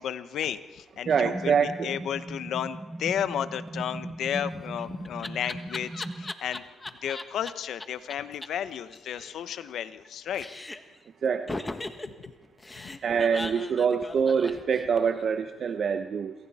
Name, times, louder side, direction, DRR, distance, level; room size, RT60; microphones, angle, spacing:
voice 1, 0.0-1.5 1.8-6.6 7.0-10.5 12.1-12.2 12.8-12.9, left 9 dB, 70° left, 12 dB, 1.0 m, -33 dB
sound 1, 1.0-6.3, right 2 dB, 15° right, 0.9 m, -38 dB
voice 2, 1.1-1.9 11.2-11.6 13.0-16.3, right 6 dB, 55° right, 8 dB, 1.0 m, -25 dB
Laughter, 4.4-7.5 7.8-7.9 8.1-8.2 8.4-8.5 8.8-10.1 10.3-11.0 11.5-15.2, left 2 dB, 20° left, 1.5 m, -38 dB
27.5 x 23.0 x 4.3 m, 1.2 s
cardioid pair, 90°, 0 cm